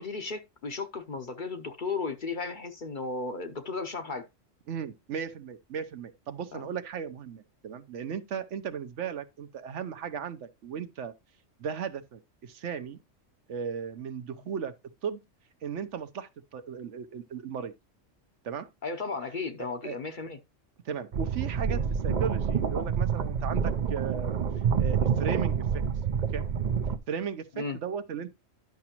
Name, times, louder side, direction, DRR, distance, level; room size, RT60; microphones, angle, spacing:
voice 1, 0.0-4.2 6.5-6.7 18.8-20.4 27.6-27.8, left 4 dB, 45° left, 0.8 m, -35 dB
voice 2, 4.7-11.1 11.6-13.0 13.5-14.7 15.0-15.2 15.6-17.7 18.4-18.7 19.6-20.0 20.8-24.4 24.8-25.6 26.3-26.4 27.1-28.3, right 7 dB, 70° right, 1.0 m, -36 dB
sound 1, 21.1-27.0, right 7 dB, 50° right, 0.6 m, -27 dB
10.5 x 6.0 x 2.9 m
omnidirectional pair, 1.3 m